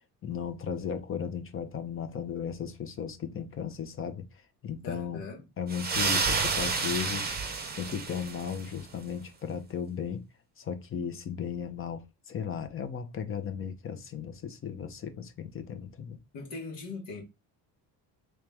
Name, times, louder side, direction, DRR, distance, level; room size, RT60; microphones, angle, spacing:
voice 1, 0.2-4.2 4.6-5.2 5.6-7.3 7.7-10.2 10.6-16.2, left 7 dB, 30° left, 0.6 m, -36 dB
voice 2, 4.8-5.4 16.3-17.2, left 3 dB, 70° left, 1.5 m, -40 dB
sound 1, 5.7-8.7, right 4 dB, 20° right, 0.7 m, -30 dB
3.2 x 3.1 x 3.3 m
cardioid pair, 120°, 44 cm